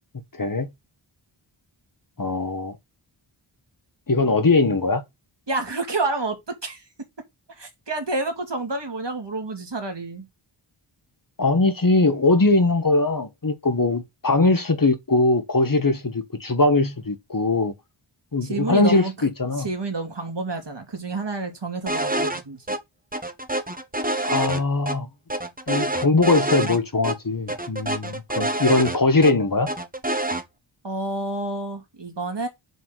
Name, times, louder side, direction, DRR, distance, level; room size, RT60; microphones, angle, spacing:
voice 1, 0.4-0.7 2.2-2.8 4.1-5.0 11.4-17.7 18.3-19.7 24.2-25.1 25.7-29.7, left 3 dB, 40° left, 1.5 m, -21 dB
voice 2, 5.5-6.8 7.6-10.3 18.4-19.1 19.6-22.6 30.8-32.5, right 3 dB, 55° right, 2.9 m, -29 dB
sound 1, 21.9-22.4 22.7-22.8 23.1-25.0 25.3-26.8 27.0-27.1 27.5-29.3 29.7-30.4, right 1 dB, 15° right, 1.2 m, -26 dB
7.0 x 4.5 x 6.2 m
wide cardioid pair, 65°, 49 cm